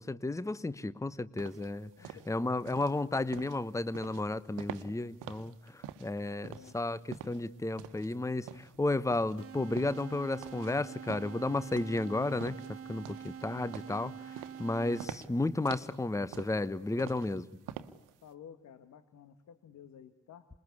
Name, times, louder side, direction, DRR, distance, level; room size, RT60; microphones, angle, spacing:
voice 1, 0.0-17.4, left 2 dB, 10° left, 16 dB, 1.1 m, -33 dB
sound 1, 1.4-18.3, right 10 dB, 60° right, 1.5 m, -47 dB
voice 2, 2.0-2.6 6.4-7.0 18.2-20.5, left 8 dB, 55° left, 10 dB, 1.9 m, -53 dB
sound 2, 9.4-15.4, right 8 dB, 40° right, 1.5 m, -46 dB
27.0 x 22.0 x 8.4 m, 0.91 s
figure-of-eight pair, 45°, 35 cm